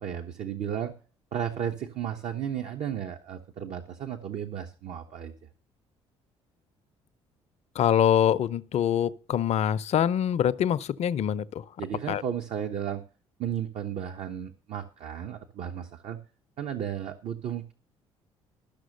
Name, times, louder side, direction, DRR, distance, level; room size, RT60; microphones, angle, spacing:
voice 1, 0.0-0.9 1.3-5.3 11.8-13.0 13.4-16.2 16.6-17.7, right 9 dB, 55° right, 0.9 m, -34 dB
voice 2, 7.7-11.6 12.1-12.2, left 9 dB, 50° left, 0.6 m, -24 dB
12.0 x 6.3 x 6.5 m
hypercardioid pair, 50°, 14 cm